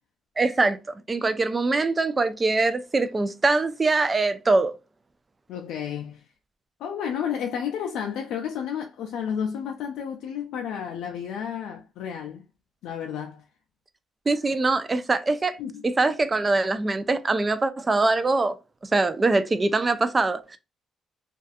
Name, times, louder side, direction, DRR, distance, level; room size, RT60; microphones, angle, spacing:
voice 1, 0.4-0.8 1.1-4.7 14.3-15.6 15.8-18.6 18.9-20.6, right 3 dB, 25° right, 0.4 m, -23 dB
voice 2, 5.5-6.2 6.8-12.4 12.8-13.4 15.6-15.8, left 8 dB, 85° left, 0.3 m, -31 dB
2.4 x 2.3 x 2.5 m
cardioid pair, 90°, 0 cm